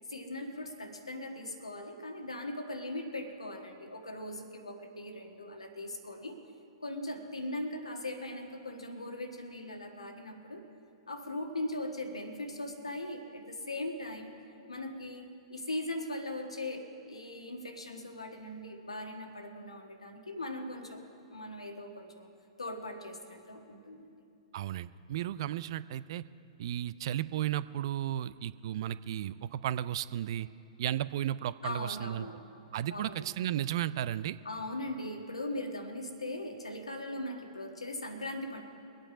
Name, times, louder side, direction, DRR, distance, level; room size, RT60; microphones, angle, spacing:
voice 1, 0.1-6.4 6.8-10.6 11.1-14.3 14.7-21.0 21.3-22.3 22.6-24.1 31.6-32.4 32.9-33.3 34.4-38.6, left 1 dB, 85° left, 4 dB, 1.5 m, -39 dB
voice 2, 24.5-26.2 26.6-30.5 30.8-32.3 32.7-34.4, right 11 dB, 55° right, 16 dB, 0.4 m, -34 dB
22.5 x 8.8 x 5.0 m, 2.5 s
figure-of-eight pair, 110°, 3 cm